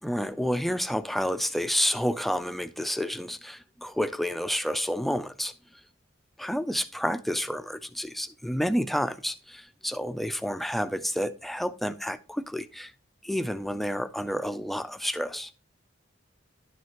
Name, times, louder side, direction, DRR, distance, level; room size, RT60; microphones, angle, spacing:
voice 1, 0.0-5.8 6.4-12.9 13.2-15.5, equal, ahead, 0.3 m, -30 dB
11.0 x 6.2 x 2.9 m
head